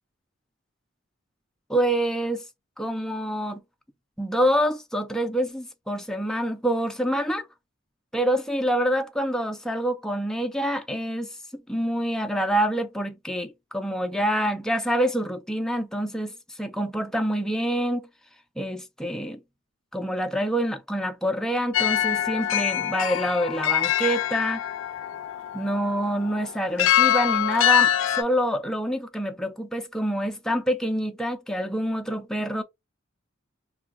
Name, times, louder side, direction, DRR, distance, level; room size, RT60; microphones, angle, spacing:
voice 1, 1.7-2.4 2.8-3.6 4.2-7.5 8.1-18.1 18.6-19.4 19.9-24.6 25.5-32.6, equal, 5° left, 0.4 m, -26 dB
sound 1, 21.7-28.2, left 11 dB, 70° left, 0.4 m, -24 dB
2.3 x 2.3 x 3.6 m
head